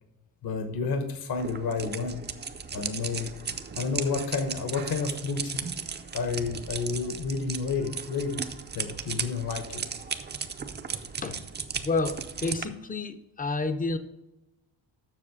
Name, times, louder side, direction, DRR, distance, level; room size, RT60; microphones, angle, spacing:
voice 1, 0.4-2.2 2.7-3.3 3.8-5.7 6.1-8.5 8.7-9.8, left 4 dB, 55° left, 7 dB, 1.0 m, -30 dB
sound 1, 1.4-12.7, right 6 dB, 25° right, 0.5 m, -36 dB
voice 2, 11.0-11.4 11.8-14.0, left 3 dB, 20° left, 10 dB, 0.5 m, -30 dB
7.5 x 6.3 x 4.8 m, 0.97 s
cardioid pair, 140°, 43 cm